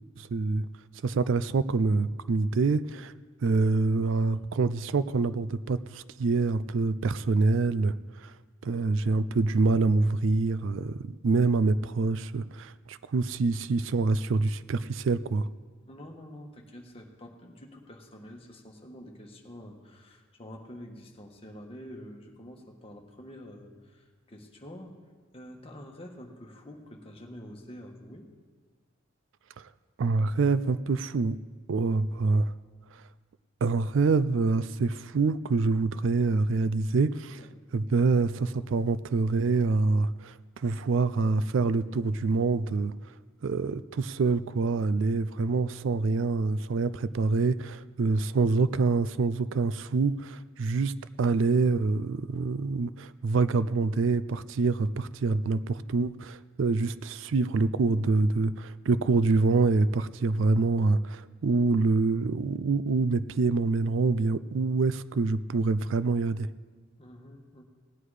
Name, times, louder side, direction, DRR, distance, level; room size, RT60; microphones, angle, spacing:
voice 1, 0.2-0.7 1.0-3.1 3.4-7.9 8.2-8.3 8.6-15.5 29.6-29.7 30.0-31.4 31.7-32.5 33.6-37.5 37.7-42.9 43.4-66.5, right 3 dB, 65° right, 16 dB, 0.4 m, -26 dB
voice 2, 15.9-25.0 25.3-28.3 37.4-37.7 40.7-40.8 67.0-67.6, equal, 30° left, 1 dB, 1.4 m, -47 dB
17.5 x 9.7 x 4.9 m, 1.5 s
head